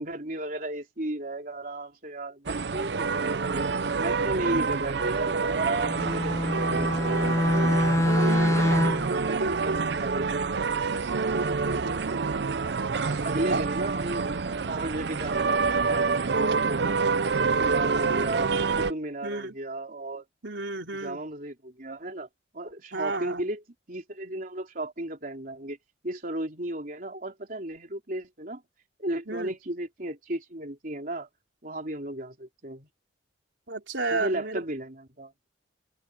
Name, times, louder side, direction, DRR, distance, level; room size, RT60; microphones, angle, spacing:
voice 1, 0.0-3.7 4.0-7.3 9.1-10.6 13.0-14.3 14.7-17.0 17.4-20.3 21.0-22.3 22.5-25.8 26.0-28.6 29.0-31.3 31.6-32.9 34.1-35.3, right 1 dB, 50° right, 3.8 m, -34 dB
sound 1, 2.5-18.9, right 4 dB, 65° right, 0.6 m, -27 dB
voice 2, 4.3-4.7 8.2-9.8 11.3-12.2 13.5-13.6 19.2-19.5 20.4-21.2 22.9-23.4 29.3-29.5 33.7-34.6, right 2 dB, 80° right, 4.2 m, -33 dB
Bowed string instrument, 5.8-9.2, left 1 dB, 15° left, 0.5 m, -25 dB
open air
head